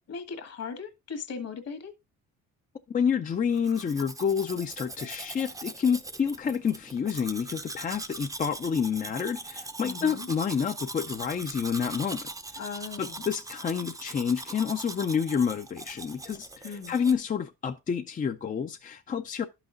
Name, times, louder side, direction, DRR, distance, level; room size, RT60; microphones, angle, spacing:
voice 1, 0.0-1.9 9.8-10.3 12.6-13.3 16.6-17.0, left 5 dB, 55° left, 1.6 m, -38 dB
voice 2, 2.9-12.3 13.0-19.5, left 7 dB, 30° left, 0.5 m, -29 dB
Domestic sounds home sounds, 3.5-17.1, right 2 dB, 10° right, 0.6 m, -41 dB
11.5 x 5.8 x 2.5 m
cardioid pair, 100°, 30 cm